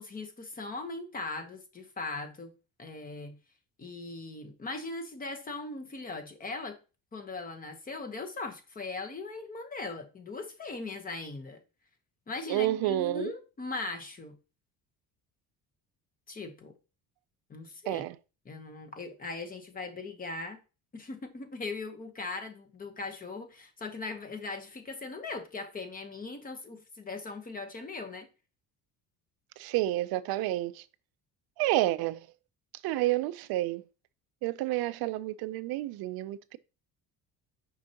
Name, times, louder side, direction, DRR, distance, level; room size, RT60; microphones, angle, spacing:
voice 1, 0.0-2.5 2.8-3.4 3.8-6.8 7.1-11.6 12.3-14.3 16.3-16.7 17.5-18.0 18.5-20.6 20.9-28.3, left 3 dB, 20° left, 0.9 m, -39 dB
voice 2, 12.5-13.3 17.9-18.2 29.6-30.8 31.6-32.3 32.8-33.8 34.4-36.6, right 15 dB, 70° right, 0.5 m, -30 dB
6.1 x 5.5 x 2.8 m
cardioid pair, 145°, 38 cm